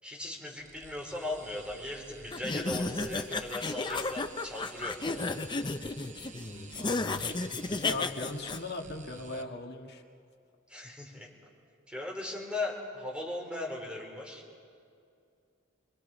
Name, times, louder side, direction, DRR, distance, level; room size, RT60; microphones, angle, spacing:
voice 1, 0.0-5.3 10.7-11.3 11.9-14.4, left 2 dB, 5° right, -2 dB, 4.0 m, -38 dB
sound 1, 0.6-9.4, right 5 dB, 40° right, 0.9 m, -52 dB
sound 2, 2.3-8.6, left 3 dB, 25° left, 0.6 m, -33 dB
voice 2, 6.4-7.2 7.7-10.0, left 2 dB, 55° left, 1 dB, 1.9 m, -39 dB
24.5 x 24.5 x 5.0 m, 2.4 s
head